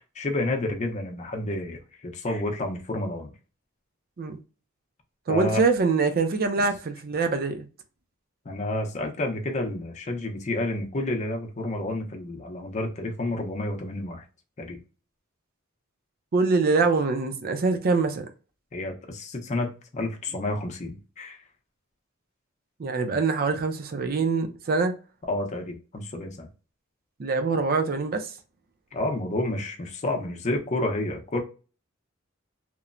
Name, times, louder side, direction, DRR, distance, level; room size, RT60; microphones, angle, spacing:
voice 1, 0.0-3.3 5.3-5.6 8.4-14.2 14.6-14.8 18.7-21.4 25.3-26.5 28.9-31.4, left 2 dB, 35° left, 0.6 m, -30 dB
voice 2, 5.3-7.7 16.3-18.3 22.8-24.9 27.2-28.3, right 4 dB, 45° right, 0.5 m, -24 dB
3.0 x 2.1 x 2.4 m
head